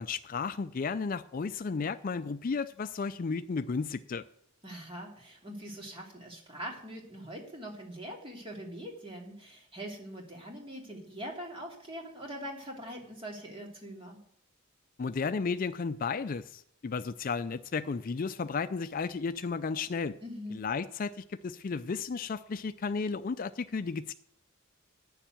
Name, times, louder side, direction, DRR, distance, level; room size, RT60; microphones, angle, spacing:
voice 1, 0.0-4.2 15.0-20.1 20.5-24.1, left 5 dB, 40° left, 0.4 m, -33 dB
voice 2, 4.6-14.2 20.2-20.7, equal, 25° right, 2.8 m, -43 dB
9.9 x 7.2 x 8.9 m
head